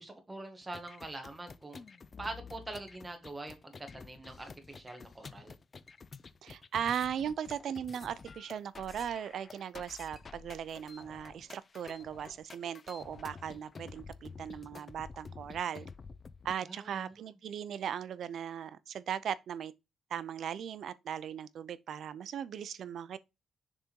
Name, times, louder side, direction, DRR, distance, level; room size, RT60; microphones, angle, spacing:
voice 1, 0.0-1.8 2.2-5.5 16.6-17.2, right 2 dB, 15° right, 1.4 m, -44 dB
sound 1, 0.6-16.5, left 5 dB, 30° left, 0.4 m, -50 dB
voice 2, 6.4-15.9 16.4-19.7 20.1-23.2, right 8 dB, 60° right, 0.5 m, -38 dB
6.6 x 3.7 x 4.5 m
cardioid pair, 165°, 0 cm